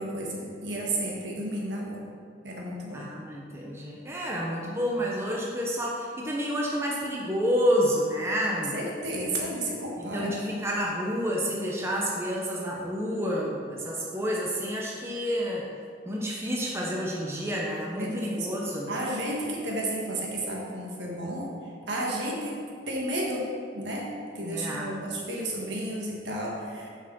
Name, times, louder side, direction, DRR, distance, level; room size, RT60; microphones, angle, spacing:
voice 1, 0.0-2.0 2.4-3.0 8.7-10.4 18.0-18.5 18.9-21.5 21.9-23.5 23.7-26.9, right 1 dB, 70° right, -2 dB, 1.8 m, -32 dB
voice 2, 2.9-8.8 10.0-15.7 16.1-18.9 24.4-24.9, equal, 15° right, -3 dB, 0.8 m, -29 dB
7.3 x 5.5 x 6.1 m, 2.2 s
head